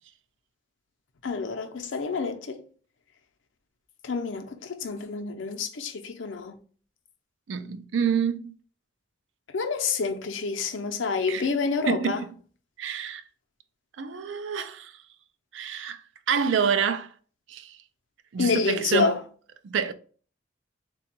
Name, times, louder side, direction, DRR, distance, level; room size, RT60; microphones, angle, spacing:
voice 1, 1.2-2.6 4.0-6.6 9.5-12.2 18.4-19.2, left 4 dB, 85° left, 0.6 m, -28 dB
voice 2, 7.5-8.5 11.3-11.5 11.9-12.3 12.8-13.2 14.0-14.9 15.5-16.0 16.3-17.1 17.5-17.8 18.3-19.1 19.6-19.9, right 6 dB, 85° right, 0.4 m, -27 dB
3.8 x 2.3 x 4.4 m
head